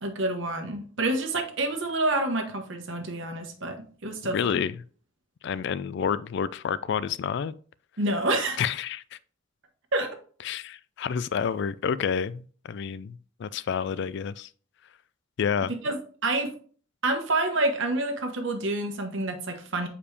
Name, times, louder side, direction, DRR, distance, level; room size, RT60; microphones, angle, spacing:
voice 1, 0.0-4.4 8.0-8.6 9.9-10.2 15.7-16.5 17.0-19.9, right 2 dB, 65° right, 1.3 m, -28 dB
voice 2, 4.2-4.7 5.4-7.5 8.6-9.2 10.4-14.5 15.4-15.7, left 7 dB, 55° left, 0.3 m, -29 dB
6.8 x 4.9 x 3.4 m
head